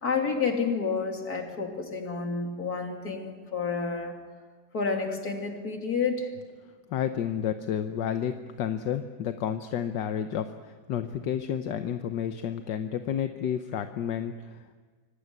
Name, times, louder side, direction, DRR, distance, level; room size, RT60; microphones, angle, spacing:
voice 1, 0.0-4.2 4.7-6.3, left 5 dB, 55° left, 3 dB, 3.3 m, -30 dB
voice 2, 6.9-14.8, left 9 dB, 75° left, 8 dB, 1.5 m, -31 dB
25.5 x 18.5 x 9.5 m, 1.5 s
omnidirectional pair, 2.0 m